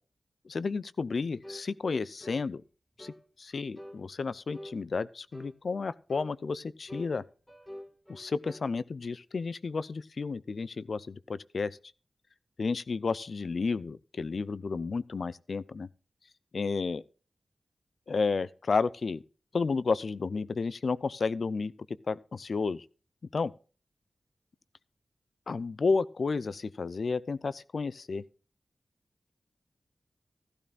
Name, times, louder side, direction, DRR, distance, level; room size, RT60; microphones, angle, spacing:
voice 1, 0.5-2.6 3.0-3.1 3.4-7.2 8.1-11.8 12.6-15.9 16.5-17.0 18.1-19.2 19.5-21.7 22.1-22.8 23.3-23.5 25.5-28.2, left 4 dB, 70° left, 0.5 m, -32 dB
sound 1, 1.4-1.7 2.2-2.5 3.0-3.2 3.8-4.0 4.5-4.8 5.3-5.6 6.1-6.3 6.9-8.7, equal, 15° left, 2.5 m, -46 dB
14.0 x 12.5 x 2.4 m
cardioid pair, 50°, 0 cm